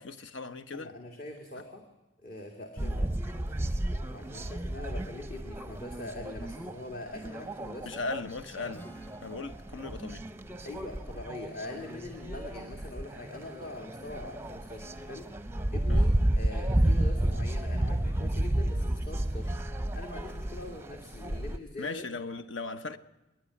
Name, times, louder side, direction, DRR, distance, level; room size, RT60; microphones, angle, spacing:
voice 1, 0.0-1.0 2.8-3.0 7.8-8.9 9.2-10.2 15.9-16.1 21.8-23.0, left 3 dB, 70° left, 1.1 m, -38 dB
voice 2, 0.7-1.8 2.2-7.9 10.6-15.2 15.7-22.1, left 2 dB, 45° left, 2.2 m, -43 dB
sound 1, 2.8-21.6, right 1 dB, 10° right, 0.6 m, -32 dB
Strum, 8.7-15.0, right 1 dB, 10° left, 0.9 m, -56 dB
27.0 x 10.5 x 9.9 m
head